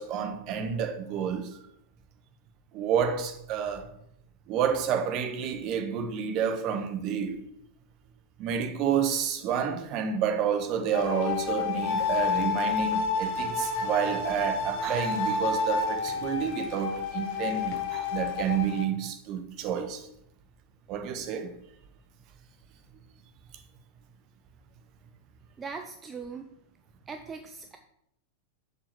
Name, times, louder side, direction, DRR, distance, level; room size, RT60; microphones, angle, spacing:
voice 1, 0.0-1.5 2.7-3.8 4.5-7.4 8.4-20.0 20.9-21.5, right 7 dB, 40° right, 1.3 m, -29 dB
sound 1, 10.9-18.8, left 4 dB, 45° left, 1.5 m, -30 dB
voice 2, 25.6-26.5 27.1-27.8, right 5 dB, 20° right, 0.7 m, -40 dB
7.0 x 5.5 x 6.2 m
figure-of-eight pair, 90°, 0 cm